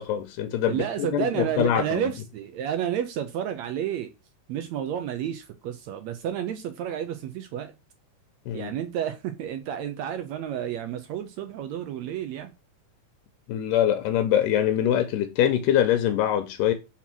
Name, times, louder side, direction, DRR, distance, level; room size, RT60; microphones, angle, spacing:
voice 1, 0.0-2.1 8.5-8.7 13.5-16.7, left 10 dB, 85° left, 2.3 m, -24 dB
voice 2, 0.7-4.1 4.5-7.7 8.5-12.5, right 9 dB, 75° right, 1.7 m, -31 dB
5.7 x 4.4 x 6.0 m
omnidirectional pair, 3.8 m